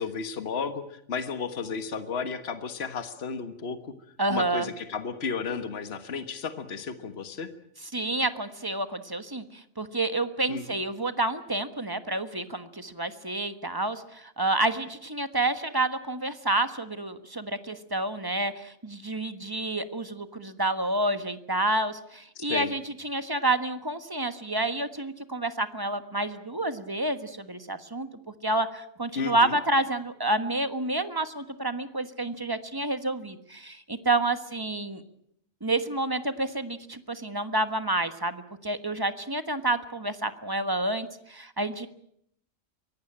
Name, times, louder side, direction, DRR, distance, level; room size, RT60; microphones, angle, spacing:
voice 1, 0.0-3.9 4.3-7.5 10.5-10.8 22.4-22.7 29.2-29.6, left 5 dB, 50° left, 9 dB, 1.6 m, -33 dB
voice 2, 4.2-4.7 7.9-28.1 28.4-35.0 35.6-41.9, right 2 dB, 15° right, 10 dB, 1.3 m, -29 dB
24.0 x 18.5 x 8.8 m, 0.71 s
omnidirectional pair, 1.4 m